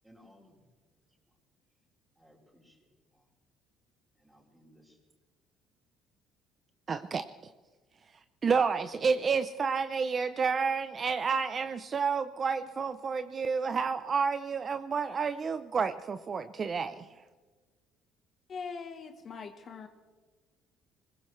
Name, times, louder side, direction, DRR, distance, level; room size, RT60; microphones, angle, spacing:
voice 1, 0.0-0.8 1.0-1.2 2.2-3.3 4.1-5.0, equal, 5° right, -2 dB, 4.1 m, -61 dB
voice 2, 6.9-7.5 8.4-17.2, right 5 dB, 30° right, 10 dB, 0.5 m, -30 dB
voice 3, 18.5-19.9, left 5 dB, 40° left, 6 dB, 1.1 m, -41 dB
22.0 x 20.0 x 3.2 m, 1.4 s
cardioid pair, 135°, 0 cm